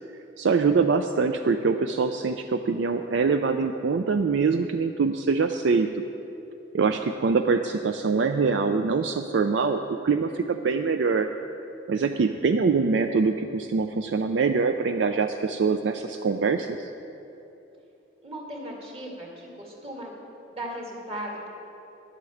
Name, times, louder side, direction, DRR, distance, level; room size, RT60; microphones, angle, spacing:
voice 1, 0.4-5.9 6.7-11.3 11.9-16.8, right 4 dB, 70° right, 7 dB, 0.4 m, -24 dB
voice 2, 18.2-20.1 20.5-21.5, right 1 dB, 35° right, -2 dB, 2.3 m, -37 dB
11.0 x 8.1 x 7.1 m, 2.9 s
head